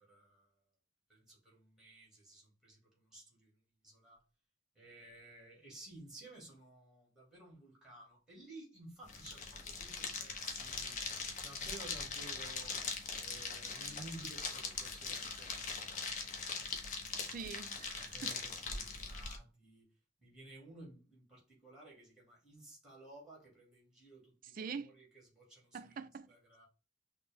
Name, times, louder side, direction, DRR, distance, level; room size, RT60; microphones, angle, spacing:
voice 1, 0.1-0.5 1.1-3.5 3.8-4.2 4.8-11.0 11.4-12.8 13.2-16.4 17.9-19.9 20.2-25.8 26.3-26.7, right 2 dB, 5° right, 1.8 m, -55 dB
sound 1, 9.0-19.4, left 4 dB, 35° left, 0.7 m, -41 dB
voice 2, 17.1-18.4 24.5-24.9 25.7-26.3, right 5 dB, 45° right, 0.3 m, -45 dB
5.9 x 2.1 x 3.4 m
head